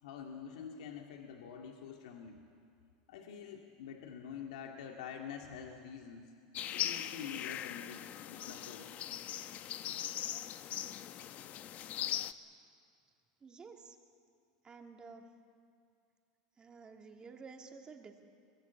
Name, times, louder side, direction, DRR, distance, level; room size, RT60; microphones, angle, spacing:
voice 1, 0.0-2.4 3.1-6.2 6.7-8.9, left 7 dB, 80° left, 2 dB, 2.1 m, -47 dB
sound 1, 6.5-12.3, left 11 dB, 40° left, 0.9 m, -40 dB
voice 2, 13.4-13.9 14.6-15.3 16.6-18.2, right 4 dB, 25° right, 3 dB, 2.7 m, -52 dB
24.0 x 20.5 x 8.4 m, 2.3 s
supercardioid pair, 115°, 4 cm